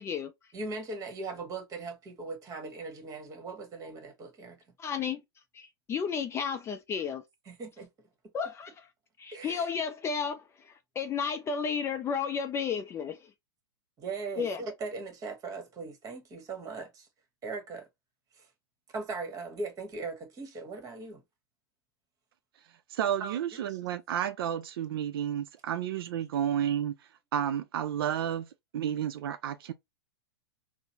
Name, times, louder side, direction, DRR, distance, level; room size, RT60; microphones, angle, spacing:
voice 1, 0.0-0.5 4.8-5.2 5.5-7.2 8.3-8.9 9.2-13.3 14.4-14.6, left 6 dB, 20° left, 0.4 m, -33 dB
voice 2, 0.5-4.6 7.5-7.9 9.3-9.7 14.0-17.1 17.4-17.9 18.4-18.5 18.9-21.2 23.2-23.8, right 3 dB, 25° right, 1.2 m, -39 dB
voice 3, 22.9-29.7, right 10 dB, 65° right, 0.4 m, -31 dB
3.8 x 2.0 x 2.7 m
hypercardioid pair, 110°, 13 cm